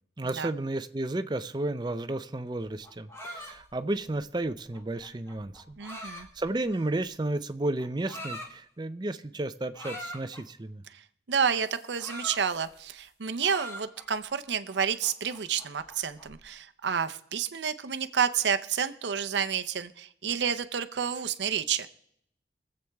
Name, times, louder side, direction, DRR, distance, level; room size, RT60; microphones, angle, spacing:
voice 1, 0.2-5.8 6.1-10.8, right 2 dB, 25° right, 11 dB, 0.5 m, -32 dB
sound 1, 2.7-7.1 7.8-8.5 9.7-10.4 11.6-13.1 13.4-14.3 14.7-16.4, equal, 15° left, 1.5 m, -43 dB
voice 2, 5.8-6.3 10.9-11.0 11.3-21.9, right 7 dB, 80° right, 10 dB, 0.7 m, -30 dB
23.5 x 7.9 x 3.5 m, 0.71 s
head